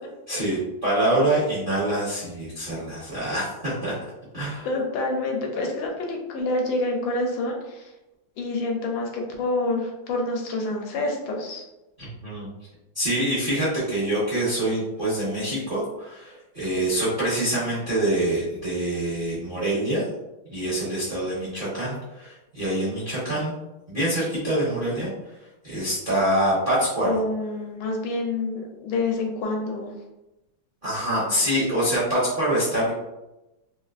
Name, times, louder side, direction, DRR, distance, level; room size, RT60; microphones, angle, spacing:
voice 1, 0.3-3.9 4.3-4.7 12.0-12.5 12.9-20.0 20.5-23.5 23.9-25.1 25.6-27.2 30.8-32.9, right 1 dB, 50° right, -8 dB, 0.6 m, -25 dB
voice 2, 4.3-7.9 8.4-11.6 16.8-17.1 27.0-29.9, left 2 dB, 80° left, 1 dB, 1.4 m, -28 dB
3.6 x 2.5 x 2.4 m, 0.98 s
omnidirectional pair, 2.1 m